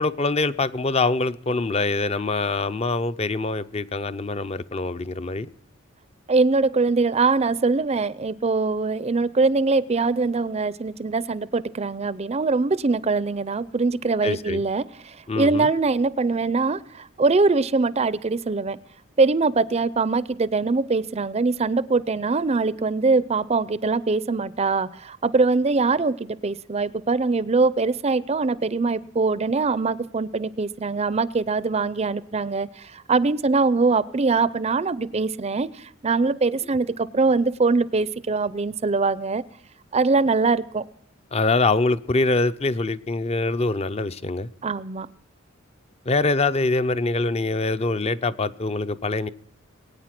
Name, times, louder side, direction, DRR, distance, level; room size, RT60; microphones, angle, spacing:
voice 1, 0.0-5.5 14.2-14.6 15.3-15.7 41.3-44.5 46.1-49.3, left 3 dB, 30° left, 0.6 m, -24 dB
voice 2, 6.3-18.8 19.2-39.4 39.9-40.8 44.6-45.1, right 3 dB, 30° right, 0.5 m, -22 dB
21.5 x 9.1 x 5.9 m
head